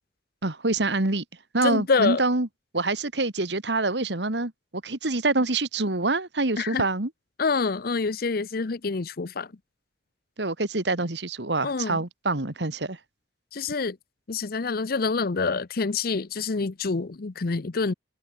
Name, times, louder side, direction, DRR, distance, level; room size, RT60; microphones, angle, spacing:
voice 1, 0.4-1.2 1.5-2.5 2.7-4.5 4.8-7.1 10.4-13.0, right 2 dB, 75° right, 2.2 m, -26 dB
voice 2, 1.6-2.2 6.6-6.8 7.4-9.5 11.6-12.0 13.5-14.0 14.3-17.9, left 4 dB, 55° left, 0.7 m, -26 dB
head